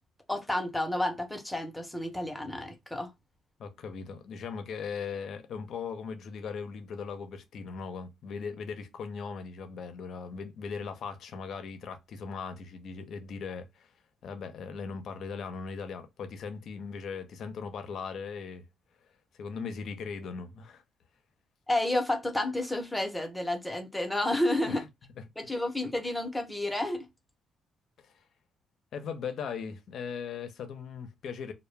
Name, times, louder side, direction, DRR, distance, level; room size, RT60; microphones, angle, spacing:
voice 1, 0.3-3.1 21.7-24.8 25.4-27.1, left 1 dB, 10° left, 0.7 m, -30 dB
voice 2, 3.6-13.9 14.2-18.6 19.4-20.8 24.7-24.8 25.2-25.3 28.0-28.1 28.9-31.5, left 5 dB, 65° left, 0.5 m, -39 dB
2.2 x 2.0 x 3.1 m
cardioid pair, 90°, 0 cm